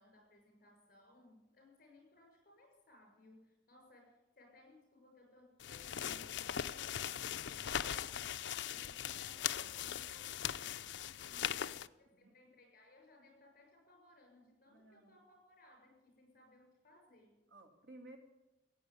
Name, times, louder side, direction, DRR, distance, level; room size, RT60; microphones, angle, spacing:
voice 1, 0.0-11.7 12.0-17.5, left 1 dB, 50° left, 2 dB, 6.5 m, -63 dB
sound 1, 5.6-11.9, left 10 dB, 75° left, 0.5 m, -40 dB
voice 2, 11.3-11.7 12.1-12.3 14.7-15.2 17.5-18.2, right 2 dB, 80° right, 3 dB, 2.5 m, -57 dB
16.5 x 8.8 x 9.6 m, 1.0 s
head